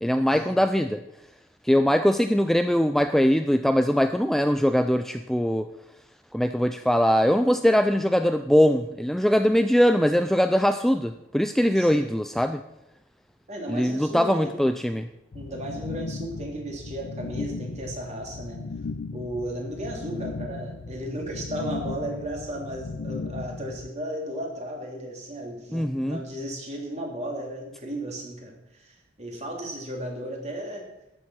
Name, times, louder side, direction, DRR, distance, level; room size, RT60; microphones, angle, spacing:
voice 1, 0.0-1.0 1.6-5.7 6.3-12.6 13.7-15.1 25.7-26.2, equal, ahead, 8 dB, 0.4 m, -22 dB
voice 2, 11.7-12.1 13.5-14.4 15.3-18.6 19.1-30.9, right 1 dB, 35° right, 0 dB, 3.1 m, -35 dB
sound 1, 15.3-23.9, left 3 dB, 65° left, 0.5 m, -36 dB
13.0 x 9.2 x 6.1 m, 0.88 s
head